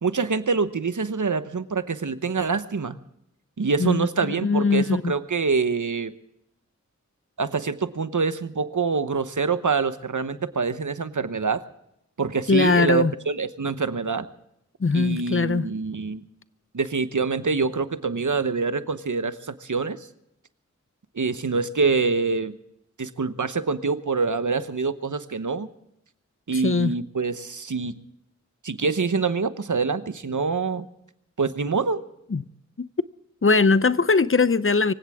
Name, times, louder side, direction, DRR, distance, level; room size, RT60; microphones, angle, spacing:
voice 1, 0.0-3.0 3.6-6.1 7.4-11.6 12.2-14.2 14.9-16.2 16.7-20.0 21.1-22.5 23.0-25.7 26.5-27.9 28.6-30.8 31.4-32.0, right 4 dB, 85° right, 1.0 m, -25 dB
voice 2, 3.8-5.1 12.5-13.1 14.8-15.7 26.5-26.9 32.3-32.4 32.8-32.9 33.4-34.9, left 4 dB, 45° left, 0.7 m, -21 dB
25.0 x 16.0 x 3.6 m
wide cardioid pair, 50°, 29 cm